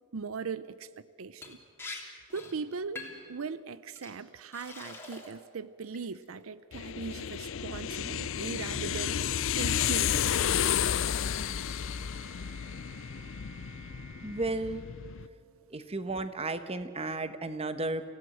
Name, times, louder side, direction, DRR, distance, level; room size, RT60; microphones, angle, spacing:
voice 1, 0.1-1.6 2.3-10.4, right 5 dB, 80° right, 16 dB, 0.6 m, -39 dB
Liquid, 1.4-1.5 1.8-2.0 2.3-2.5 3.0-3.3 3.9-4.1 4.5-5.4 5.8-6.2, left 3 dB, 10° left, 2.9 m, -44 dB
sound 1, 6.7-15.3, left 9 dB, 65° left, 0.5 m, -32 dB
sound 2, 11.2-15.7, right 1 dB, 15° right, 2.1 m, -53 dB
voice 2, 14.2-14.8 15.7-18.0, right 2 dB, 30° right, 11 dB, 1.0 m, -33 dB
27.5 x 16.5 x 7.8 m, 2.3 s
head